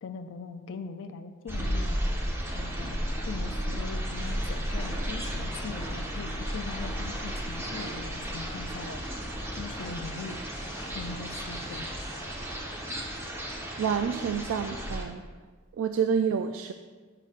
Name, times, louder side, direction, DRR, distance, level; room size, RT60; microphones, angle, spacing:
voice 1, 0.0-3.0 3.2-9.0 9.5-10.4 10.9-11.9, left 4 dB, 65° left, 8 dB, 0.4 m, -41 dB
sound 1, 1.5-15.0, equal, 10° right, 1.0 m, -34 dB
sound 2, 3.9-12.5, equal, 25° right, 1.6 m, -45 dB
sound 3, 4.2-12.2, equal, 15° left, 0.8 m, -49 dB
voice 2, 13.8-15.2 15.8-16.7, right 7 dB, 65° right, 7 dB, 0.3 m, -28 dB
10.5 x 6.8 x 2.4 m, 1.5 s
head